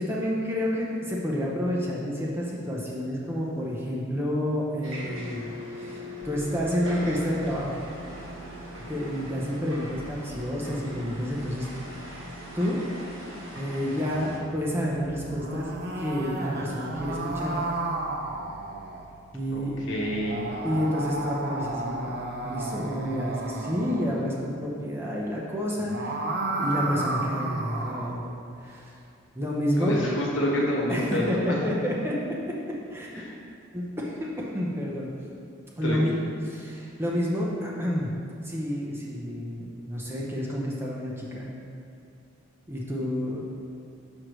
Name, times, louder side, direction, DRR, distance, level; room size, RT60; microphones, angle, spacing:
voice 1, 0.0-7.8 8.9-11.7 12.5-12.8 13.6-15.7 16.0-17.6 19.3-19.9 20.6-26.2 26.5-28.3 28.6-28.9 29.3-30.0 30.9-32.2 32.9-33.2 33.7-35.1 35.8-36.1 36.4-38.1 38.4-41.5 42.7-43.4, equal, 10° right, -4 dB, 0.6 m, -29 dB
sound 1, 4.8-14.4, left 1 dB, 70° right, 1.4 m, -40 dB
sound 2, 6.2-24.2, right 2 dB, 30° left, 0.7 m, -50 dB
sound 3, 15.2-19.0 20.0-24.2 25.7-28.2, right 2 dB, 50° right, 0.6 m, -32 dB
voice 2, 19.5-20.5 29.7-31.6 33.1-33.3 35.7-36.0, equal, 60° left, -3 dB, 1.1 m, -28 dB
6.3 x 6.2 x 3.0 m, 2.5 s
head